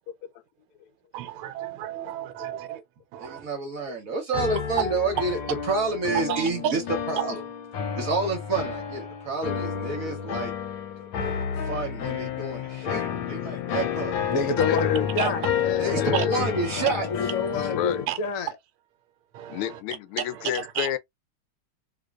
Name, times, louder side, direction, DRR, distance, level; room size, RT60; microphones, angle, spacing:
voice 1, 1.1-2.8 3.1-3.5 6.3-6.7 7.2-7.3 11.2-11.4 15.2-15.3 16.1-16.2 18.1-18.2 19.3-19.8 20.5-21.0, right 11 dB, 85° right, 1.4 m, -32 dB
voice 2, 3.2-7.4 7.9-10.5 11.6-14.1 15.8-17.1 17.6-17.7, right 3 dB, 55° right, 1.1 m, -29 dB
sound 1, 4.3-18.1, left 8 dB, 70° left, 1.3 m, -30 dB
voice 3, 11.0-11.6 13.1-13.2 14.7-15.1 16.0-16.4 17.7-18.1 19.5-21.0, left 11 dB, 90° left, 1.5 m, -31 dB
voice 4, 14.3-16.1 17.1-18.5, left 4 dB, 55° left, 1.0 m, -28 dB
3.8 x 2.8 x 2.4 m
omnidirectional pair, 2.3 m